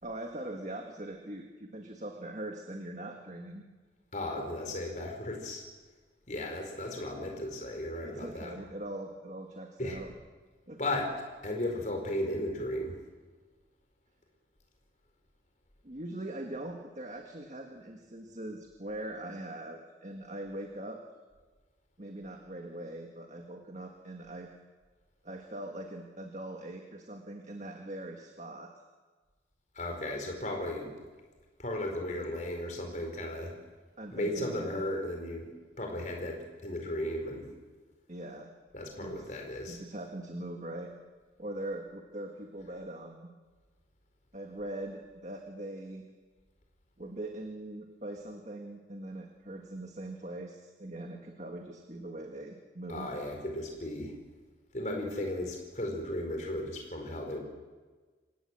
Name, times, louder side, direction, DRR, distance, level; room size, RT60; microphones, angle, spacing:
voice 1, 0.0-3.6 8.0-10.1 10.7-10.8 15.8-21.0 22.0-24.5 25.2-28.7 34.0-34.8 38.1-38.5 39.0-39.3 39.7-40.9 41.4-43.3 44.3-46.1 47.0-53.1, right 1 dB, 40° right, 3 dB, 1.8 m, -41 dB
voice 2, 4.1-5.7 6.3-8.5 9.8-10.0 10.8-11.1 11.4-13.0 29.7-30.9 31.6-33.5 34.1-35.5 35.8-37.5 38.7-39.8 52.9-54.1 54.7-57.4, left 1 dB, 45° left, 2 dB, 4.7 m, -35 dB
27.0 x 16.5 x 7.7 m, 1.4 s
head